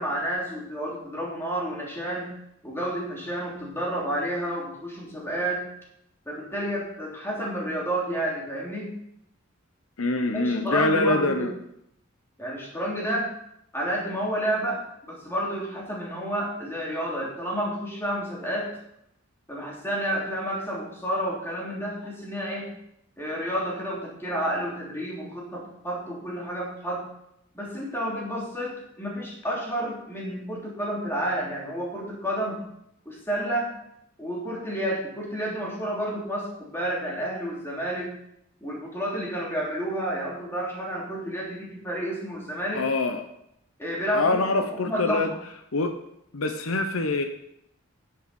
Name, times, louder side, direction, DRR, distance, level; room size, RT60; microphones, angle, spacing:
voice 1, 0.0-2.3 2.6-5.7 6.3-8.9 10.3-11.5 12.4-13.3 13.7-18.7 19.5-22.7 23.2-27.1 27.5-32.6 33.0-33.7 34.2-38.1 38.6-42.8 43.8-44.6 44.8-45.3, right 1 dB, 10° left, -4 dB, 3.1 m, -30 dB
voice 2, 10.0-11.5 42.7-43.2 44.1-45.3 45.7-46.0 46.3-47.2, left 2 dB, 75° left, 7 dB, 0.9 m, -24 dB
10.5 x 7.9 x 5.4 m, 0.77 s
head